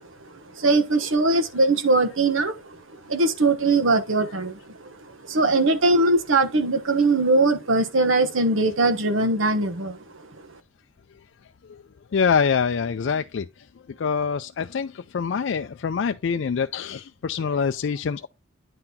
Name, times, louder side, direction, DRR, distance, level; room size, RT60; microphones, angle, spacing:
voice 1, 0.5-2.8 3.1-4.9 5.3-10.0, right 2 dB, 75° right, 1.2 m, -21 dB
voice 2, 12.1-13.5 14.0-18.3, left 6 dB, 65° left, 0.4 m, -25 dB
9.9 x 3.9 x 4.2 m
head